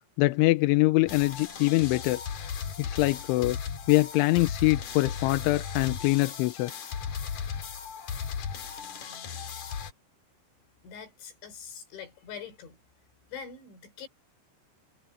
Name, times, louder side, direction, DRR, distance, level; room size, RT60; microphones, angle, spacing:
voice 1, 0.2-2.2 2.8-3.6 3.9-6.7, left 20 dB, 85° left, 3.2 m, -24 dB
sound 1, 1.1-9.9, left 7 dB, 50° left, 2.6 m, -36 dB
voice 2, 10.8-12.8 13.3-14.1, left 7 dB, 70° left, 6.4 m, -43 dB
omnidirectional pair, 5.5 m